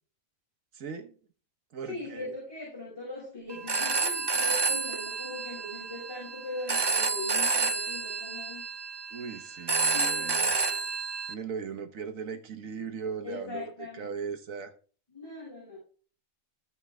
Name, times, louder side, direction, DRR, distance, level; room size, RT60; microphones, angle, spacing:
voice 1, 0.7-1.1 1.7-2.4 9.1-10.6 11.3-14.7, right 6 dB, 75° right, 1.5 m, -38 dB
voice 2, 1.9-8.7 9.9-10.8 13.2-14.1 15.1-15.8, left 2 dB, 15° left, 6.0 m, -40 dB
Telephone, 3.5-11.3, right 4 dB, 40° right, 0.3 m, -30 dB
15.5 x 5.5 x 3.4 m
omnidirectional pair, 1.4 m